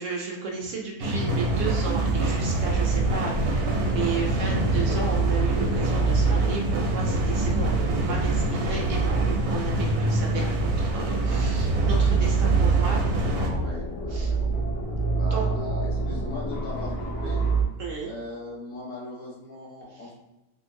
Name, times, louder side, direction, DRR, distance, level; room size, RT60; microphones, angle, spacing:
voice 1, 0.0-13.0 14.1-14.3 15.3-15.5 17.8-18.1, right 4 dB, 65° right, -1 dB, 0.9 m, -34 dB
sound 1, 1.0-13.5, right 1 dB, 85° right, 1.1 m, -27 dB
sound 2, 1.2-17.6, right 4 dB, 85° left, 1.3 m, -26 dB
voice 2, 12.6-14.4 15.1-17.5 18.1-20.1, left 1 dB, 60° left, -4 dB, 1.6 m, -39 dB
3.7 x 2.6 x 2.6 m, 1.0 s
omnidirectional pair, 1.5 m